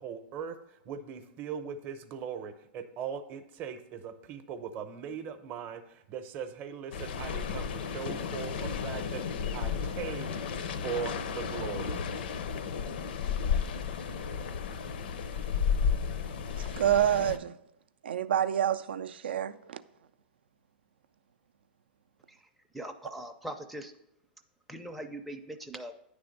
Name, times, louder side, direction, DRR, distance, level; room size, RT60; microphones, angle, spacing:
voice 1, 0.0-10.4 10.7-12.1, right 7 dB, 35° right, 0.7 m, -40 dB
sound 1, 6.9-17.4, left 6 dB, 70° left, 0.5 m, -33 dB
voice 2, 16.8-17.5 18.0-19.8, right 10 dB, 85° right, 0.4 m, -27 dB
voice 3, 22.7-23.9 24.7-25.9, right 1 dB, ahead, 0.4 m, -41 dB
9.4 x 3.4 x 5.1 m
hypercardioid pair, 125°, 5 cm